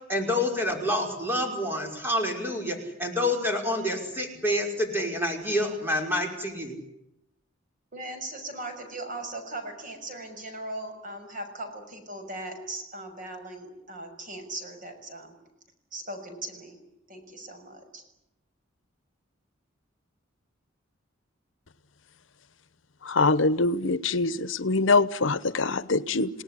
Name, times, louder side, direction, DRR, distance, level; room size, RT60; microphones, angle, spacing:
voice 1, 0.1-6.8, left 1 dB, 10° right, 2 dB, 5.5 m, -28 dB
voice 2, 7.9-15.3 15.9-16.8 17.1-18.0, right 2 dB, 45° right, 6 dB, 6.2 m, -39 dB
voice 3, 23.1-26.3, left 3 dB, 75° left, 15 dB, 1.0 m, -24 dB
29.5 x 18.0 x 10.0 m, 0.84 s
head